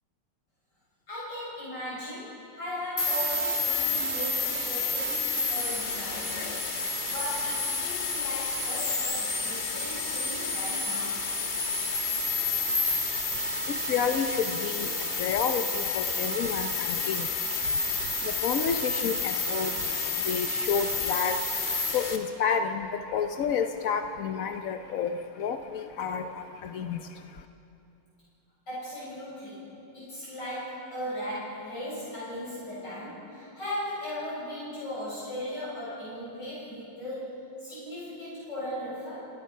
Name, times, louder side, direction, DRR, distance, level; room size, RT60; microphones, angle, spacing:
voice 1, 1.1-6.7 7.1-11.2 28.7-29.6 29.9-39.2, left 1 dB, 50° left, -10 dB, 8.0 m, -37 dB
sound 1, 3.0-22.2, left 3 dB, 25° left, 1.3 m, -30 dB
voice 2, 12.3-27.4, left 7 dB, 75° left, 7 dB, 0.7 m, -31 dB
29.5 x 17.5 x 5.6 m, 2.8 s
omnidirectional pair, 2.4 m